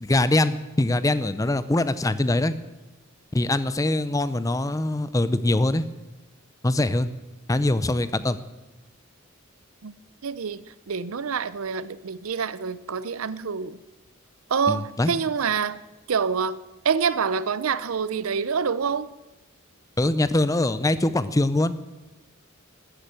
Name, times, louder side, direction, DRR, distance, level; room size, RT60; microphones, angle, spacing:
voice 1, 0.0-2.5 3.3-5.9 6.6-7.1 7.5-8.4 14.7-15.1 20.0-21.7, left 2 dB, 15° left, 0.5 m, -23 dB
voice 2, 10.2-13.8 14.5-15.8 16.1-16.6 16.8-19.1, right 6 dB, 80° right, 0.6 m, -26 dB
13.5 x 9.8 x 7.7 m
head